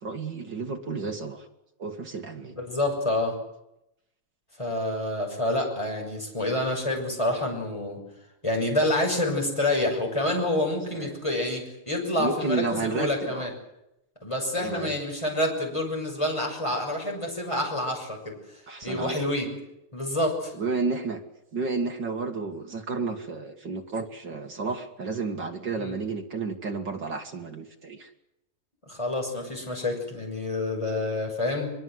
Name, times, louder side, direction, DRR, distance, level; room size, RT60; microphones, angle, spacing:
voice 1, 0.0-1.4 1.8-2.6 10.9-11.2 12.2-13.6 14.5-15.0 18.7-19.2 20.6-21.2 21.5-28.1, right 4 dB, 40° right, 3 dB, 1.7 m, -31 dB
voice 2, 2.5-3.4 4.6-8.0 8.4-13.5 14.2-18.4 18.8-19.5 19.9-20.5 25.8-25.9 28.9-31.7, left 1 dB, 10° left, 1 dB, 6.4 m, -28 dB
23.0 x 22.5 x 7.7 m, 0.85 s
omnidirectional pair, 4.0 m